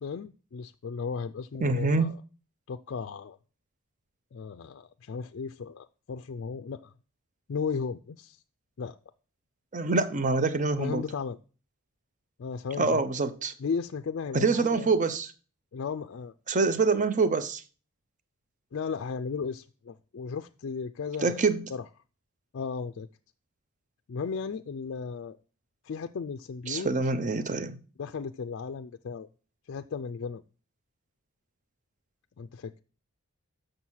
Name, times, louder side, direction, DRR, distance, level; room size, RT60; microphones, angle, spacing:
voice 1, 0.0-2.2 2.7-3.4 4.3-6.9 7.5-8.4 8.8-9.0 10.8-11.4 12.4-13.0 13.6-14.9 15.7-16.3 18.7-21.8 22.5-23.1 24.1-25.4 25.8-26.9 28.0-29.3 29.7-30.4 32.4-32.7, left 5 dB, 55° left, 0.4 m, -35 dB
voice 2, 1.6-2.1 9.7-11.0 12.8-13.5 14.3-15.3 16.5-17.6 21.2-21.6 26.7-27.8, right 3 dB, 35° right, 0.6 m, -25 dB
7.2 x 6.5 x 6.2 m
head